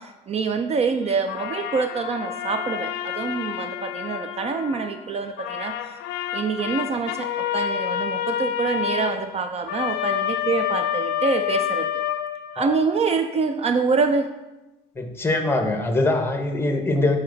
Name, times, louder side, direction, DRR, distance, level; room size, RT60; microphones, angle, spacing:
voice 1, 0.0-6.0 6.3-11.9 12.5-14.3, right 5 dB, 40° right, 7 dB, 0.4 m, -26 dB
sound 1, 1.3-5.0 5.4-12.9, left 10 dB, 85° left, 0.5 m, -28 dB
voice 2, 15.0-17.2, left 2 dB, 15° left, 4 dB, 1.0 m, -22 dB
9.0 x 4.1 x 3.9 m, 1.0 s
cardioid pair, 110°, 17 cm